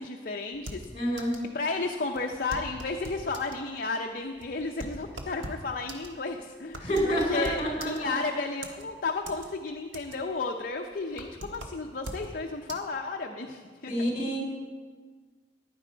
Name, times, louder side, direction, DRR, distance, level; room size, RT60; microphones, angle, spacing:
voice 1, 0.0-1.1 1.5-13.9, left 3 dB, 50° left, 3 dB, 0.7 m, -33 dB
sound 1, 0.5-1.5 1.8-1.9 2.2-3.6 4.2-8.3 8.6-9.5 9.8-10.4 10.7-12.3 12.7-12.8, right 1 dB, 85° right, 1.4 m, -41 dB
voice 2, 0.9-1.4 6.8-8.3 13.9-14.4, equal, 30° left, 0 dB, 3.8 m, -28 dB
15.0 x 11.0 x 4.5 m, 1.5 s
head